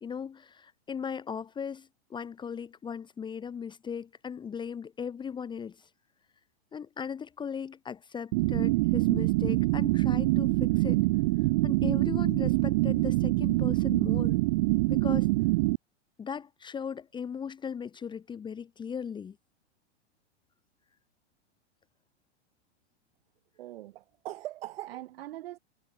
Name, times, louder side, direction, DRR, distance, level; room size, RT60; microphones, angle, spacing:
voice 1, 0.0-5.9 6.7-11.0 11.6-14.4 14.9-15.3 16.2-19.4, left 7 dB, 15° left, 1.4 m, -38 dB
sound 1, 8.3-15.8, right 21 dB, 40° right, 0.5 m, -25 dB
voice 2, 23.6-25.6, right 15 dB, 60° right, 6.0 m, -41 dB
hypercardioid pair, 135°, 34 cm